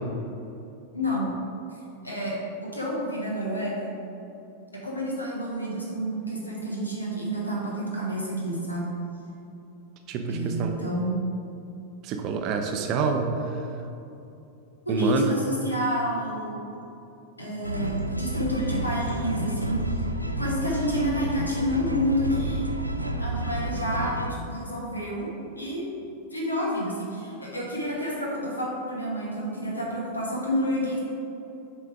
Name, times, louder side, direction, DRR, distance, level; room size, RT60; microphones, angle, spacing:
voice 1, 0.9-1.3 2.0-2.4 2.7-3.9 4.7-8.9 10.3-11.2 14.8-16.6 17.4-20.0 20.4-22.7 23.2-25.3 25.5-25.9 26.3-31.0, equal, 85° left, -4 dB, 1.3 m, -29 dB
voice 2, 10.1-10.7 12.0-13.6 14.9-15.3, right 5 dB, 40° right, 4 dB, 0.6 m, -27 dB
sound 1, 17.6-24.3, right 1 dB, 85° right, 0.3 m, -30 dB
7.0 x 3.4 x 4.7 m, 2.8 s
figure-of-eight pair, 90°, 0 cm